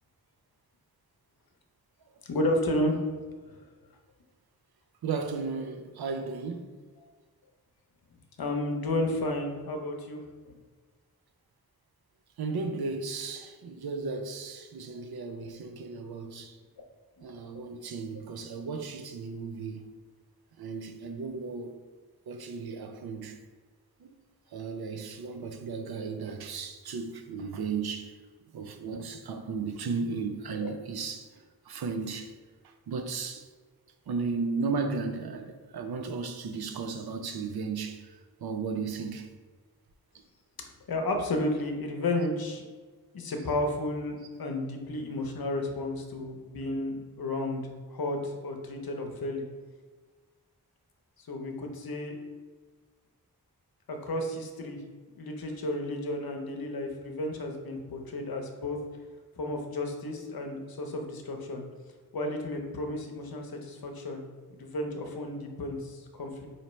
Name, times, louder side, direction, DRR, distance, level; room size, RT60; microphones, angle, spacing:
voice 1, 2.2-3.1 3.5-3.6 7.0-7.1 8.4-10.2 14.9-15.0 28.9-29.0 30.5-30.8 40.9-42.6 43.1-47.6 47.9-49.5 51.2-52.2 53.9-54.8 55.2-58.8 59.4-61.6 62.1-64.2 64.6-66.5, left 1 dB, 70° left, 0.7 m, -32 dB
voice 2, 5.0-6.7 12.4-16.6 17.2-19.9 20.6-21.8 22.3-23.4 24.0-24.1 24.5-28.1 28.5-31.3 31.7-32.3 32.9-33.5 34.1-38.1 38.4-39.3, right 4 dB, 75° right, 0.5 m, -35 dB
4.3 x 2.8 x 3.0 m
wide cardioid pair, 75°, 38 cm